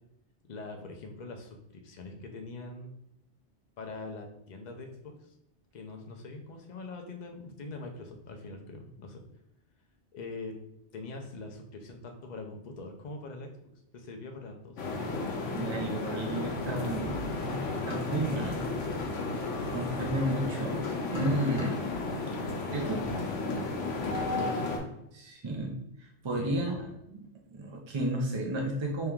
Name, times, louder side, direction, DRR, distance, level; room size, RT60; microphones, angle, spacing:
voice 1, 0.4-2.9 3.8-5.3 5.7-9.2 10.1-10.5 10.9-14.8 22.7-23.6 24.0-24.7 26.3-26.8, left 3 dB, 45° left, 3 dB, 0.6 m, -43 dB
sound 1, 14.8-24.8, left 3 dB, 85° left, 1.1 m, -33 dB
voice 2, 15.5-17.1 17.4-18.6 19.7-21.8 22.7-22.9 25.1-29.1, right 1 dB, 45° right, 0 dB, 0.4 m, -33 dB
3.3 x 2.8 x 3.5 m, 0.80 s
omnidirectional pair, 1.2 m